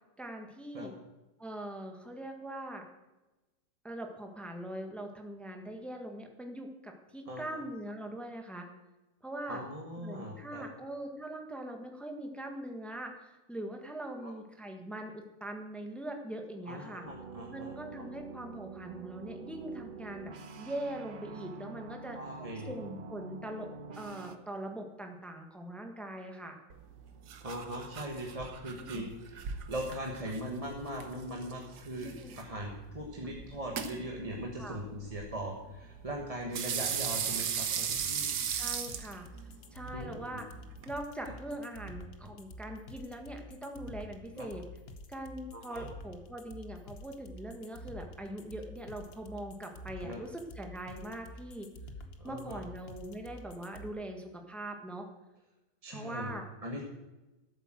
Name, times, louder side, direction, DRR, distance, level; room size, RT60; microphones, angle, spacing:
voice 1, 0.2-0.9 1.4-2.8 3.8-8.7 9.2-9.6 10.0-17.0 17.5-22.2 22.6-23.7 24.0-26.6 28.8-29.1 32.0-32.3 34.6-34.8 38.5-39.3 39.7-40.5 40.8-44.6 45.1-51.7 52.2-55.1 55.9-56.4, right 1 dB, ahead, 3 dB, 1.3 m, -42 dB
voice 2, 7.3-7.6 9.5-10.6 14.1-14.3 16.7-17.7 22.1-22.7 27.4-38.3 39.9-40.4 44.3-44.5 45.5-45.9 50.0-50.2 52.2-52.6 55.8-56.3 56.6-56.8, equal, 20° right, 0 dB, 1.3 m, -40 dB
sound 1, 17.0-24.4, right 4 dB, 80° right, 0.4 m, -46 dB
sound 2, 26.7-40.9, right 7 dB, 65° right, 1.5 m, -39 dB
sound 3, 37.9-53.9, left 1 dB, 40° left, 1.0 m, -48 dB
12.5 x 8.2 x 7.5 m, 1.1 s
omnidirectional pair, 2.0 m